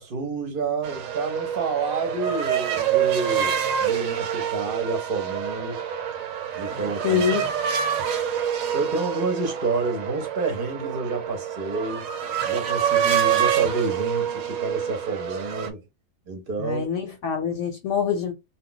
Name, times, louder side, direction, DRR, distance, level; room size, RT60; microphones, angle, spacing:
voice 1, 0.0-5.8 6.5-7.2 8.7-12.1 12.5-15.8 16.3-16.9, right 3 dB, 50° right, 0.8 m, -29 dB
sound 1, 0.8-15.7, right 9 dB, 80° right, 1.0 m, -26 dB
voice 2, 7.0-7.5 16.6-18.3, left 7 dB, 70° left, 0.9 m, -25 dB
2.4 x 2.2 x 3.8 m
omnidirectional pair, 1.4 m